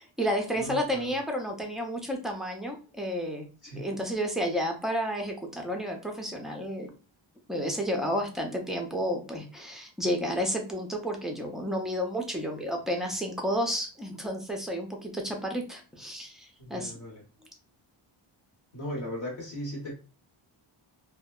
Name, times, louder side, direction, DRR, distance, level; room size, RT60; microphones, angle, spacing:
voice 1, 0.0-3.5 3.7-6.9 7.5-16.9, equal, ahead, 1 dB, 0.4 m, -31 dB
voice 2, 0.5-1.2 3.6-3.9 16.6-17.2 18.7-19.9, equal, 60° left, -3 dB, 0.9 m, -37 dB
2.7 x 2.1 x 2.2 m, 0.36 s
wide cardioid pair, 145°, 48 cm